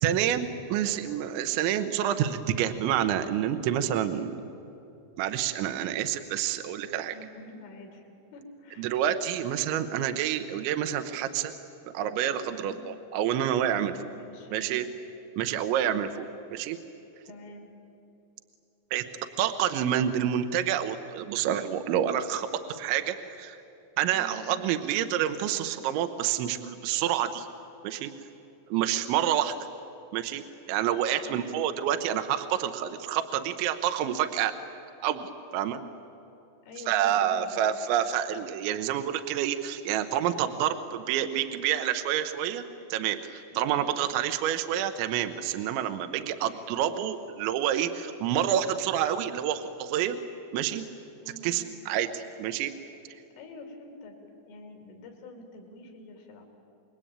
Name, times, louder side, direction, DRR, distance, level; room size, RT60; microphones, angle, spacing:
voice 1, 0.0-4.3 5.2-7.1 8.8-11.5 11.9-14.0 14.5-14.9 15.4-16.8 18.9-19.1 19.4-23.6 24.0-27.5 27.8-28.1 28.7-29.5 30.1-34.6 35.0-35.8 36.9-42.6 42.9-50.2 50.5-50.9 51.4-52.7, right 10 dB, 75° right, 8 dB, 3.1 m, -28 dB
voice 2, 7.1-8.9 12.5-12.8 14.1-14.9 17.3-17.7 24.1-24.4 31.2-31.6 36.6-37.7 43.5-43.8 51.2-51.9 53.4-54.2 54.5-56.5, left 2 dB, 75° left, 2 dB, 5.6 m, -47 dB
28.5 x 22.0 x 8.9 m, 2.9 s
omnidirectional pair, 5.7 m